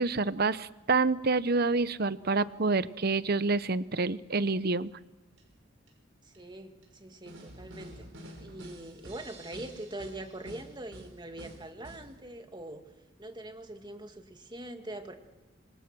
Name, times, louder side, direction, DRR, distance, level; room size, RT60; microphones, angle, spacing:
voice 1, 0.0-4.9, right 3 dB, 50° right, 15 dB, 0.9 m, -27 dB
sound 1, 5.4-5.5 5.9-6.0 6.3-6.4 6.8-6.9 7.3-12.1, right 1 dB, 75° right, 6.0 m, -48 dB
voice 2, 6.2-8.1 8.4-12.8 13.2-15.1, right 1 dB, 25° right, 6 dB, 2.2 m, -43 dB
26.5 x 26.5 x 6.2 m, 1.1 s
head